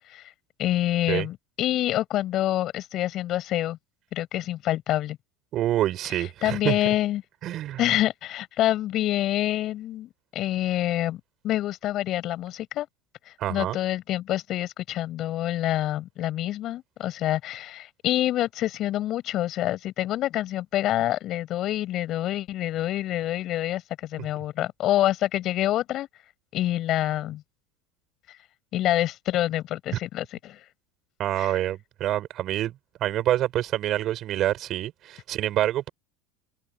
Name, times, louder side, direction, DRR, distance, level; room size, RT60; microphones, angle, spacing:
voice 1, 0.6-3.8 4.1-5.2 6.4-7.2 7.8-12.9 13.5-23.8 24.1-26.1 26.5-27.4 28.7-30.6 31.4-31.5, left 14 dB, 40° left, 7.6 m, -26 dB
voice 2, 5.5-6.8 7.4-7.8 13.4-13.8 31.2-32.8 33.0-35.9, right 13 dB, 40° right, 6.9 m, -26 dB
supercardioid pair, 145°, 0 cm